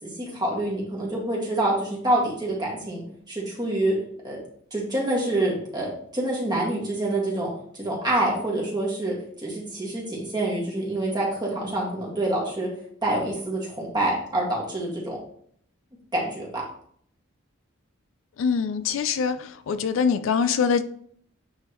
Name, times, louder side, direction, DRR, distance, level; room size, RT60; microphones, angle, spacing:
voice 1, 0.0-4.0 4.2-4.4 4.7-7.5 7.8-12.7 13.0-15.2 16.1-16.6, right 1 dB, 20° right, -3 dB, 1.8 m, -26 dB
voice 2, 18.4-19.4 19.7-20.8, left 6 dB, 65° left, 12 dB, 0.4 m, -23 dB
8.6 x 3.7 x 3.0 m, 0.62 s
head